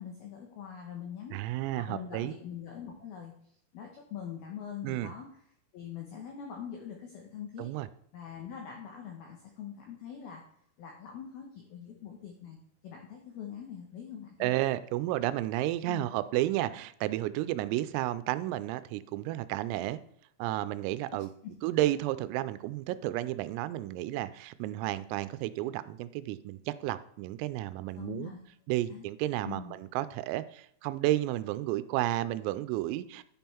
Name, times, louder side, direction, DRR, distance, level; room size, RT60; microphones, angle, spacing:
voice 1, 0.0-1.4 1.9-3.3 3.7-5.3 5.7-7.7 8.1-10.4 10.8-12.6 12.8-14.5 15.9-16.1 21.4-21.5 27.9-28.4 28.9-29.1 29.4-29.7, left 8 dB, 80° left, 1 dB, 2.2 m, -43 dB
voice 2, 1.3-2.4 4.8-5.1 7.6-7.9 14.4-20.0 20.4-21.3 21.6-28.3 28.7-33.2, right 15 dB, 90° right, 14 dB, 3.3 m, -32 dB
10.5 x 5.4 x 4.4 m, 0.68 s
omnidirectional pair, 5.9 m